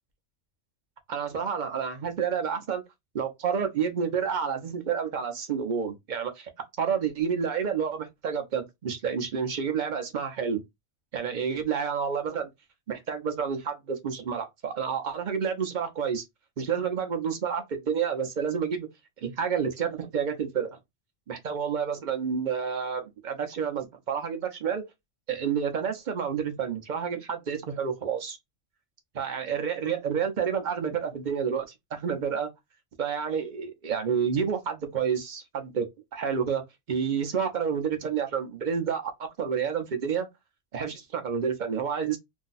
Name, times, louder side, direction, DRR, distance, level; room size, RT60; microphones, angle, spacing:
voice 1, 1.1-2.8 3.1-6.5 6.8-10.6 11.1-12.5 12.9-16.2 16.6-18.9 19.2-20.8 21.3-24.8 25.3-28.4 29.2-32.5 33.0-36.6 36.9-40.3 40.7-42.2, right 7 dB, 45° right, 0.8 m, -29 dB
2.6 x 2.2 x 3.9 m
omnidirectional pair, 1.2 m